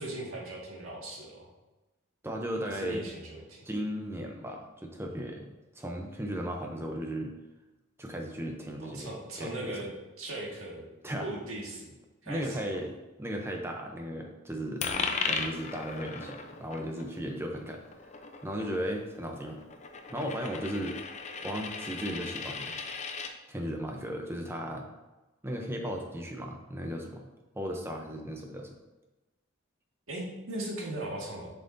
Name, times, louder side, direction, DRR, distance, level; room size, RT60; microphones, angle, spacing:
voice 1, 0.0-1.5 2.7-3.6 8.8-10.9 11.2-11.9 12.2-12.8 30.1-31.5, right 1 dB, 90° right, -2 dB, 1.8 m, -38 dB
voice 2, 2.2-3.0 3.6-7.3 8.0-9.8 11.0-11.3 12.3-12.9 13.2-14.8 15.3-18.1 18.4-19.6 20.1-21.0 21.4-22.8 23.5-24.9 25.4-27.3 27.5-28.8, equal, 10° right, 2 dB, 0.6 m, -36 dB
Coin (dropping), 14.8-23.3, left 4 dB, 35° left, 0.5 m, -37 dB
7.5 x 5.7 x 2.6 m, 1.1 s
head